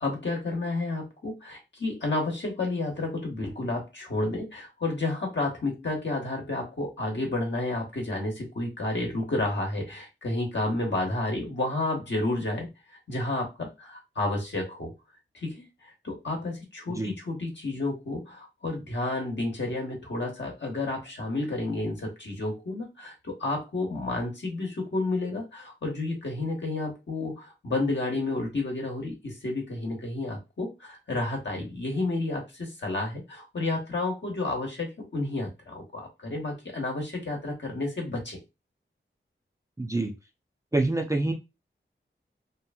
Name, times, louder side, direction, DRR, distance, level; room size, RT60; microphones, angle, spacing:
voice 1, 0.0-12.7 13.1-14.9 15.3-38.4, left 2 dB, 60° left, 0 dB, 1.0 m, -31 dB
voice 2, 39.8-40.1 40.7-41.3, right 2 dB, 15° right, 3 dB, 0.4 m, -26 dB
2.8 x 2.5 x 2.2 m, 0.25 s
wide cardioid pair, 70°, 21 cm